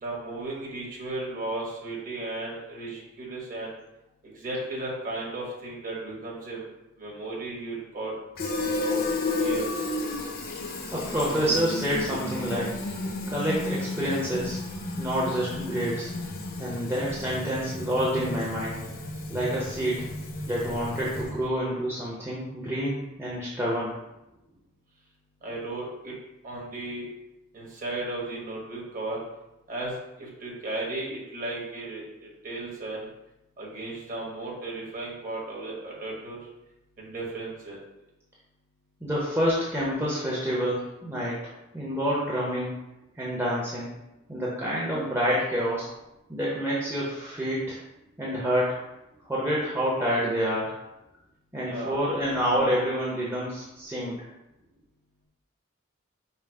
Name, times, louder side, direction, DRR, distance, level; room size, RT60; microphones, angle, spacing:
voice 1, 0.0-3.7 4.3-6.6 7.0-8.1 8.8-9.0 9.3-9.8 25.4-26.1 26.4-27.1 27.5-29.2 29.7-33.1 33.6-36.4 37.0-37.8 51.6-52.0, right 2 dB, 40° right, -4 dB, 1.2 m, -35 dB
Fill (with liquid), 8.4-21.5, left 2 dB, 45° left, 0.6 m, -32 dB
voice 2, 10.9-12.8 13.3-14.6 15.0-16.1 16.6-18.8 19.3-20.1 20.5-24.0 39.0-41.4 41.7-42.8 43.2-43.9 44.3-45.9 46.3-47.8 48.2-48.8 49.2-50.8 51.5-54.3, equal, 10° right, -7 dB, 0.7 m, -28 dB
5.5 x 2.0 x 4.7 m, 0.94 s
head